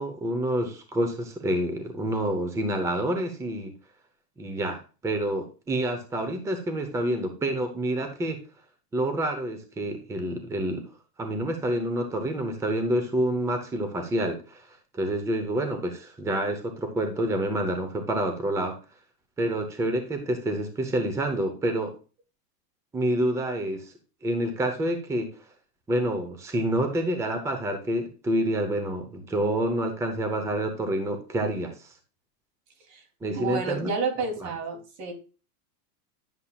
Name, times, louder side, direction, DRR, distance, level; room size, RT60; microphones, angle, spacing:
voice 1, 0.0-3.7 4.4-8.4 8.9-10.8 11.2-14.6 14.9-18.8 19.4-21.9 22.9-23.9 24.2-25.3 25.9-31.9 33.2-33.9 34.4-34.5, right 1 dB, 5° right, 6 dB, 0.7 m, -28 dB
voice 2, 33.3-35.1, right 4 dB, 85° right, 4 dB, 3.1 m, -30 dB
10.0 x 7.2 x 2.4 m, 0.33 s
supercardioid pair, 165°, 47 cm